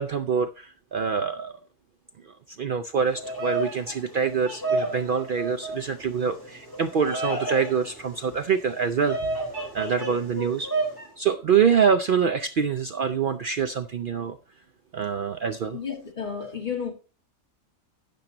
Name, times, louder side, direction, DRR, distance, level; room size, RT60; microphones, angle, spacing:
voice 1, 0.0-1.6 2.6-9.2 9.7-10.7 11.2-14.4 14.9-15.8, right 6 dB, 85° right, 0.4 m, -25 dB
Bird vocalization bird call bird song, 3.0-11.1, right 2 dB, 15° left, 4.3 m, -32 dB
voice 2, 15.7-16.9, left 7 dB, 30° left, 2.0 m, -32 dB
12.0 x 9.1 x 2.8 m
omnidirectional pair, 1.6 m